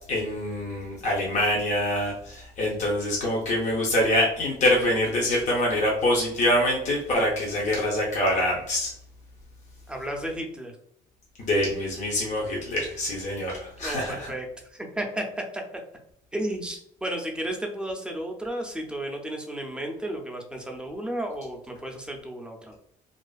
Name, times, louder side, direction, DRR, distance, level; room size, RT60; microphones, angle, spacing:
voice 1, 0.1-8.9 11.4-14.3, left 1 dB, 45° left, -3 dB, 0.6 m, -25 dB
voice 2, 9.9-10.7 13.8-14.5 14.7-15.6 16.3-22.8, right 1 dB, 5° right, 1 dB, 0.4 m, -33 dB
2.4 x 2.4 x 2.3 m, 0.69 s
cardioid pair, 110°, 17 cm